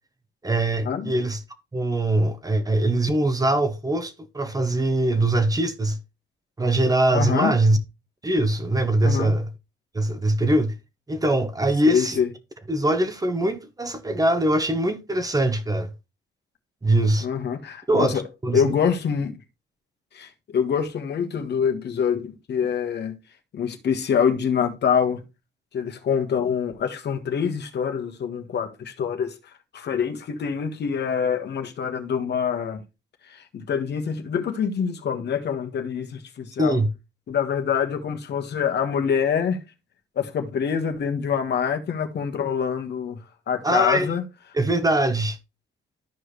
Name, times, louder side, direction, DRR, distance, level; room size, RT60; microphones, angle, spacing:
voice 1, 0.4-1.4 1.7-6.0 6.6-7.8 8.2-9.5 9.9-10.7 11.1-12.2 12.7-15.9 16.8-17.3 17.9-18.7 36.6-36.9 43.6-44.1 44.5-45.4, right 1 dB, 20° right, 1.1 m, -22 dB
voice 2, 7.1-7.5 9.0-9.3 11.9-12.3 17.2-18.2 18.5-19.4 20.1-23.2 23.5-25.2 25.7-29.4 29.7-32.8 33.3-36.8 37.3-39.6 40.1-43.2 43.5-44.2, left 7 dB, 60° left, 1.5 m, -25 dB
13.5 x 4.8 x 3.2 m
cardioid pair, 90°, 20 cm